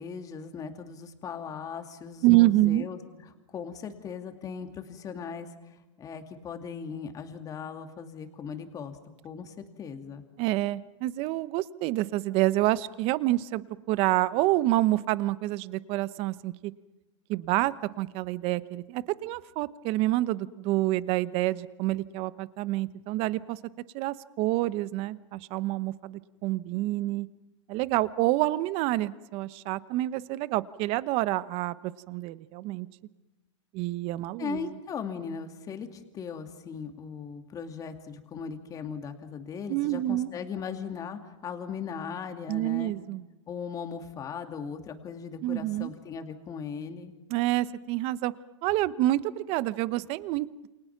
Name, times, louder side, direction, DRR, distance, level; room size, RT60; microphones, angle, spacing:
voice 1, 0.0-3.0 3.5-5.5 6.0-9.0 9.2-10.2 34.4-42.9 43.5-47.1, left 6 dB, 20° left, 6 dB, 2.5 m, -38 dB
voice 2, 2.2-2.9 10.4-13.6 13.9-16.7 17.3-23.6 23.9-27.3 27.7-32.9 33.7-34.7 39.7-40.3 42.5-43.2 45.4-45.9 47.3-48.3 48.6-50.7, right 17 dB, 35° right, 16 dB, 0.9 m, -27 dB
28.5 x 28.0 x 6.0 m, 1.1 s
hypercardioid pair, 140°, 16 cm